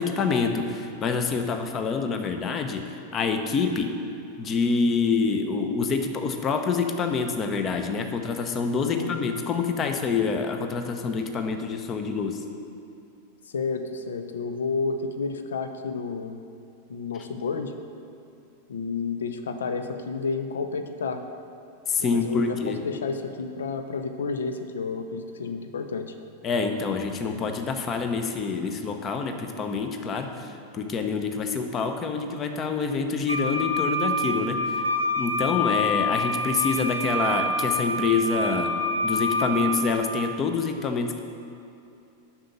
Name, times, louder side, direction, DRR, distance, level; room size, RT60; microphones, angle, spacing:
voice 1, 0.0-4.0 4.4-12.4 21.9-22.8 26.4-34.9 35.2-41.2, left 5 dB, 30° left, 6 dB, 0.8 m, -26 dB
voice 2, 8.8-9.4 13.5-16.4 16.9-17.7 18.7-21.2 22.0-26.1, left 4 dB, 65° left, 7 dB, 0.6 m, -31 dB
Wind instrument woodwind instrument, 33.3-40.0, left 1 dB, 90° right, 0.7 m, -27 dB
7.6 x 6.0 x 6.7 m, 2.6 s
figure-of-eight pair, 90°, 0 cm